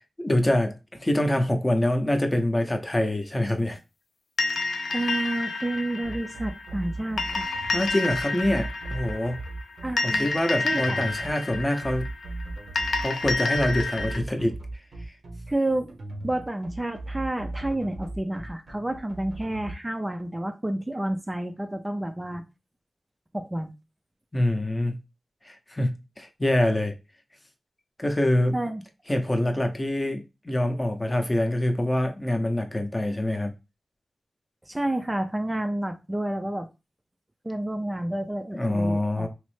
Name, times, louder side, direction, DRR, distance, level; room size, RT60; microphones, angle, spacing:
voice 1, 0.2-0.7 1.0-3.8 7.7-9.4 10.0-12.1 13.0-14.5 24.3-25.0 25.4-26.9 28.0-28.6 29.1-33.5 38.5-39.3, left 1 dB, 20° left, 0.6 m, -25 dB
sound 1, 4.4-14.2, left 3 dB, 85° left, 0.4 m, -30 dB
voice 2, 4.9-7.5 9.8-10.3 10.6-11.0 15.5-15.9 16.2-22.4 23.3-23.7 28.5-28.8 34.6-36.7 37.4-39.3, right 1 dB, 20° right, 0.3 m, -30 dB
sound 2, 6.0-19.7, right 2 dB, 80° right, 0.7 m, -37 dB
3.0 x 2.0 x 3.1 m
cardioid pair, 60°, 0 cm